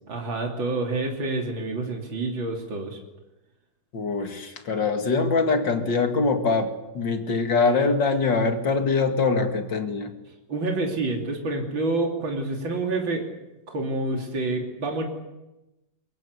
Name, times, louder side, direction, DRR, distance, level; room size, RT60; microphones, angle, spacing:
voice 1, 0.1-3.0 10.5-13.3 13.7-15.0, right 2 dB, 70° right, 1 dB, 3.8 m, -28 dB
voice 2, 3.9-10.1, left 4 dB, 65° left, 5 dB, 2.8 m, -23 dB
23.0 x 22.0 x 8.2 m, 0.99 s
omnidirectional pair, 2.2 m